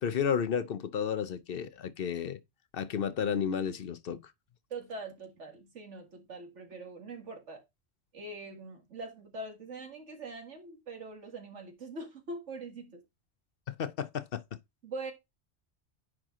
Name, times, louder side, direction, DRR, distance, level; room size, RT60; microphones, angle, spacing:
voice 1, 0.0-2.4 2.7-4.2 13.7-14.4, left 7 dB, 55° left, 0.9 m, -32 dB
voice 2, 4.7-7.6 8.1-13.0 14.8-15.1, right 2 dB, 85° right, 2.2 m, -43 dB
9.8 x 4.6 x 3.7 m
omnidirectional pair, 1.2 m